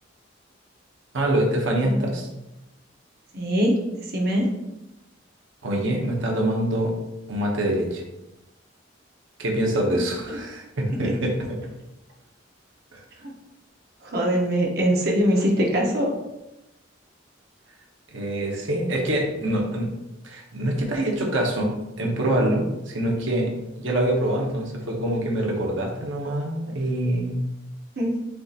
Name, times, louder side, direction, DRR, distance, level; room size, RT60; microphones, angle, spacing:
voice 1, 1.1-2.3 5.6-6.9 7.3-8.0 9.4-11.3 12.9-13.0 18.1-19.9 20.2-27.4, right 1 dB, 85° right, 0 dB, 0.9 m, -25 dB
voice 2, 3.3-4.5 9.9-10.0 11.0-11.1 13.2-13.3 14.0-16.1 28.0-28.1, equal, 55° right, -1 dB, 0.8 m, -23 dB
6.9 x 2.8 x 2.4 m, 0.95 s
head